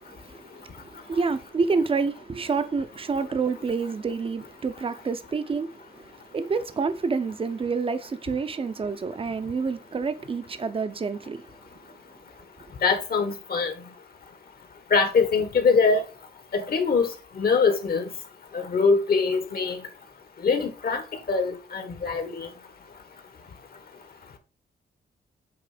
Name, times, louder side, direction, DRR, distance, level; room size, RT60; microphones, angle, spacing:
voice 1, 0.0-11.6, right 4 dB, 30° right, 0.7 m, -28 dB
voice 2, 12.8-13.7 14.9-16.0 16.5-18.1 18.5-19.8 20.4-21.0 21.3-22.5, left 4 dB, 55° left, 1.5 m, -23 dB
8.6 x 3.2 x 5.0 m
wide cardioid pair, 140°, 18 cm